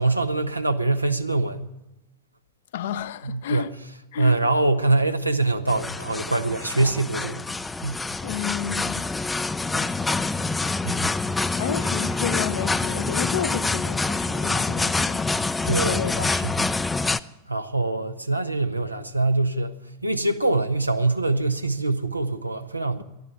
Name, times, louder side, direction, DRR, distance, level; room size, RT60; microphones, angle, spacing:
voice 1, 0.0-1.7 3.2-3.7 4.2-7.4 7.8-8.0 10.8-11.2 15.6-16.7 17.5-19.8 20.0-23.0, right 2 dB, 85° right, 1.0 m, -24 dB
voice 2, 2.7-3.7 4.1-4.4 8.2-9.0 9.7-9.9 11.6-15.2 15.8-16.4 23.0-23.1, left 10 dB, 60° left, 0.7 m, -31 dB
sound 1, 5.7-17.2, left 3 dB, 10° left, 0.4 m, -26 dB
12.5 x 11.0 x 9.7 m
figure-of-eight pair, 90°, 0 cm